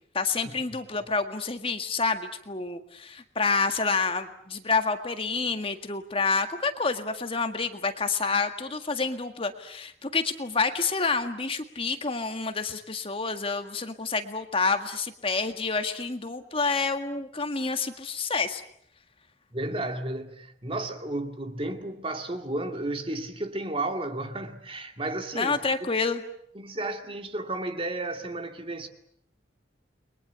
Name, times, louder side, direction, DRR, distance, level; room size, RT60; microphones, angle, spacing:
voice 1, 0.1-18.6 25.3-26.2, left 4 dB, 30° left, 1.8 m, -28 dB
voice 2, 19.5-25.9 26.6-28.9, right 2 dB, 30° right, 2.3 m, -33 dB
30.0 x 23.0 x 8.2 m
head